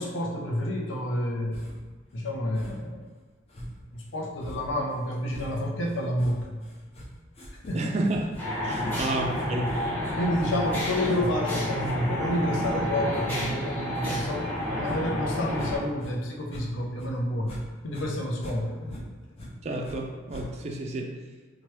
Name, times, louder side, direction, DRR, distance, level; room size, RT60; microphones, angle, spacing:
voice 1, 0.0-1.7 2.1-3.1 3.9-6.6 7.5-8.0 8.8-9.0 10.2-17.6 17.8-19.0, left 1 dB, 85° left, 0 dB, 0.6 m, -29 dB
sound 1, 1.5-2.0 2.5-3.0 3.5-16.1 16.4-17.6 17.9-20.0 20.3-20.8, equal, 35° left, 0.5 m, -44 dB
voice 2, 7.7-8.2 8.6-9.7 14.1-14.2 19.6-21.1, right 2 dB, 35° right, 1 dB, 0.4 m, -30 dB
sound 2, 8.4-15.8, equal, 10° left, 0.9 m, -30 dB
2.9 x 2.2 x 3.1 m, 1.4 s
head